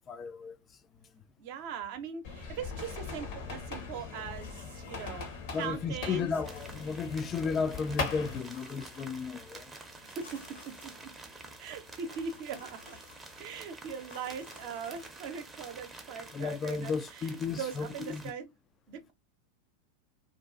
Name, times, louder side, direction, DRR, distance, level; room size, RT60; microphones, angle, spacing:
voice 1, 0.1-0.6 5.5-9.7 16.3-18.2, left 5 dB, 30° left, 0.3 m, -34 dB
voice 2, 1.4-5.3 5.6-6.3 10.0-10.9 11.6-13.0 13.4-18.5 18.9-19.1, right 6 dB, 55° right, 0.6 m, -40 dB
sound 1, 2.2-8.4, left 5 dB, 55° left, 0.8 m, -40 dB
sound 2, 2.8-15.1, left 4 dB, 75° left, 1.2 m, -57 dB
sound 3, 6.4-18.3, right 2 dB, 10° right, 0.6 m, -49 dB
2.5 x 2.3 x 2.3 m
figure-of-eight pair, 90°, 0 cm